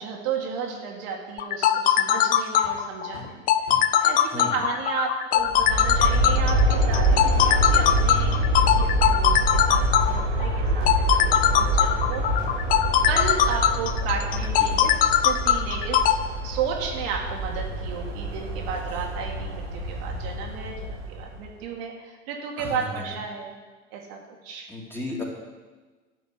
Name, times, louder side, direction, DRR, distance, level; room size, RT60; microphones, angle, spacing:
voice 1, 0.0-8.4 8.7-9.8 10.1-11.0 11.4-12.4 13.1-15.0 15.2-16.1 16.4-23.5 23.9-24.2 24.4-24.7, right 6 dB, 50° right, -1 dB, 2.2 m, -33 dB
sound 1, 1.4-16.1, left 11 dB, 25° left, 0.5 m, -21 dB
sound 2, 2.6-2.8 3.1-3.4 3.7-4.1 6.5-7.9 8.3-8.4 10.1-13.7 14.0-14.1, left 4 dB, 80° left, 1.8 m, -44 dB
voice 2, 4.2-4.6 14.4-14.8 22.6-23.1 24.7-25.2, left 1 dB, 5° left, -2 dB, 2.5 m, -35 dB
Aircraft, 5.4-21.5, right 1 dB, 70° right, 3.2 m, -26 dB
12.5 x 5.1 x 8.0 m, 1.3 s
figure-of-eight pair, 85°, 37 cm